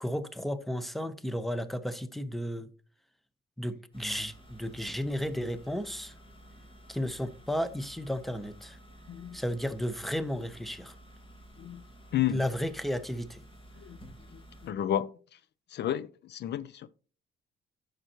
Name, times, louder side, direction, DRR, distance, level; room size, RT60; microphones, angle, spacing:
voice 1, 0.0-2.7 3.6-6.1 6.9-8.8 9.3-10.9 12.3-13.4, equal, ahead, 0.8 m, -33 dB
sound 1, 3.9-14.7, right 1 dB, 25° left, 1.8 m, -53 dB
voice 2, 14.6-15.1 15.7-16.9, left 11 dB, 60° left, 0.5 m, -31 dB
10.5 x 6.6 x 3.0 m
cardioid pair, 90°, 20 cm